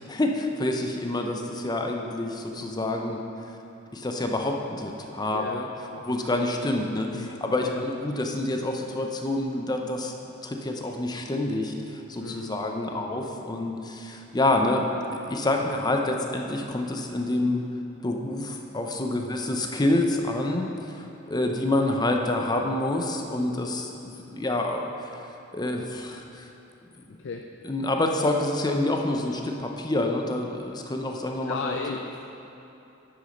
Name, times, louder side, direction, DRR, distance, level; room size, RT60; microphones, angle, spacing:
voice 1, 0.1-3.2 3.9-5.7 6.0-10.1 10.4-14.8 15.3-17.6 18.0-25.2 25.5-26.5 27.6-32.0, left 1 dB, 20° left, 2 dB, 0.7 m, -27 dB
voice 2, 5.3-6.0 7.1-7.4 7.7-7.9 12.2-12.6 12.9-13.1 15.6-15.7 19.1-19.3 27.2-27.5 31.4-32.2, left 4 dB, 60° left, 3 dB, 0.4 m, -36 dB
9.9 x 6.3 x 5.2 m, 2.9 s
head